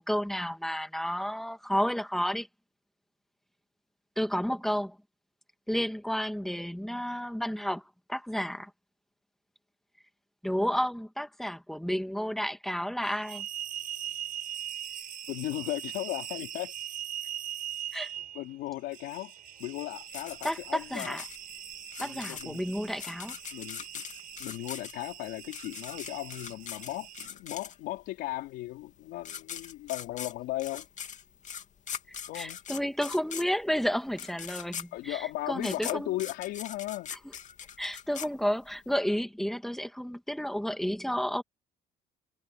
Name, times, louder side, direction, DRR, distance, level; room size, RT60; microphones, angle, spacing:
voice 1, 0.0-2.5 4.2-5.0 5.7-7.8 8.1-8.7 10.4-13.5 17.9-18.1 20.4-21.2 22.0-23.4 32.4-36.2 37.8-41.4, equal, ahead, 2.1 m, -31 dB
sound 1, 13.0-27.3, right 10 dB, 55° right, 5.4 m, -41 dB
voice 2, 15.3-16.7 18.3-19.3 19.6-21.2 22.0-22.6 23.5-24.0 24.4-30.9 32.3-32.6 34.9-37.1, left 17 dB, 90° left, 4.3 m, -36 dB
sound 2, 20.1-28.1 28.9-29.0 29.2-38.9, left 8 dB, 45° left, 2.5 m, -41 dB
cardioid pair, 110°, 17 cm